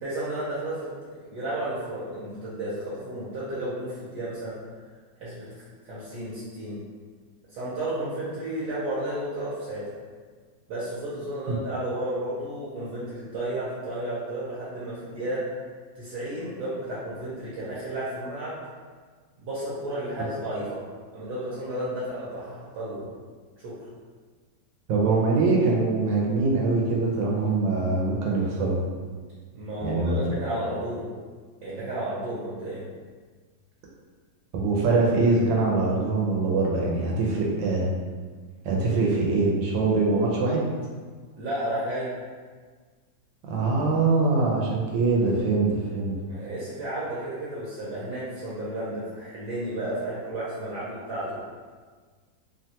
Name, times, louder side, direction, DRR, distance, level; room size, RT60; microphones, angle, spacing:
voice 1, 0.0-0.9 1.3-4.6 5.2-5.5 5.9-6.8 7.5-9.8 10.7-15.5 15.9-18.6 19.4-20.8 21.1-23.0 23.6-23.7 29.5-31.1 31.6-32.8 41.3-42.1 46.3-51.4, right 1 dB, 70° right, -10 dB, 1.2 m, -32 dB
voice 2, 24.9-28.8 29.8-30.2 34.5-37.9 38.6-40.6 43.5-45.7 45.9-46.2, right 3 dB, 90° right, -3 dB, 1.3 m, -23 dB
3.1 x 2.2 x 2.7 m, 1.5 s
omnidirectional pair, 2.0 m